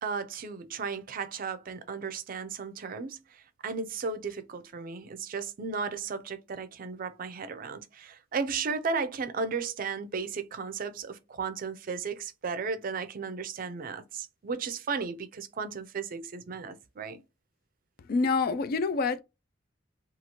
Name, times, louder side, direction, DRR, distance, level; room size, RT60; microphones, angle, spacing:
voice 1, 0.0-17.2, right 5 dB, 50° right, 0.4 m, -35 dB
voice 2, 18.1-19.2, left 4 dB, 50° left, 0.3 m, -26 dB
2.9 x 2.4 x 2.8 m
head